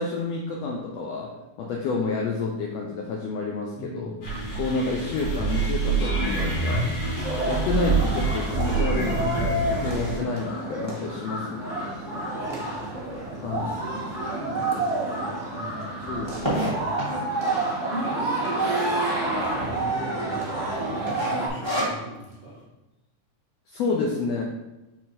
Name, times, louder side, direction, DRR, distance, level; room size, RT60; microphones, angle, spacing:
voice 1, 0.0-4.2 4.5-6.9 7.5-11.9 13.4-13.8 16.1-16.8 21.3-21.6 23.7-24.4, left 3 dB, 80° left, 0 dB, 1.6 m, -29 dB
voice 2, 3.7-4.6 12.3-12.9 13.6-16.1 16.6-17.1 17.9-22.6, right 2 dB, 90° right, -7 dB, 0.4 m, -37 dB
sound 1, 4.2-10.2, right 3 dB, 55° left, 3.0 m, -26 dB
sound 2, 7.2-21.5, right 2 dB, 15° right, 0.9 m, -29 dB
sound 3, 13.9-14.0 14.6-14.7 14.9-15.0 15.3-17.4 18.0-18.5 18.8-18.9 19.1-19.2 19.7-20.1 20.4-20.7 21.1-22.3, equal, 20° left, 0.8 m, -29 dB
6.3 x 4.0 x 4.2 m, 0.99 s
omnidirectional pair, 3.6 m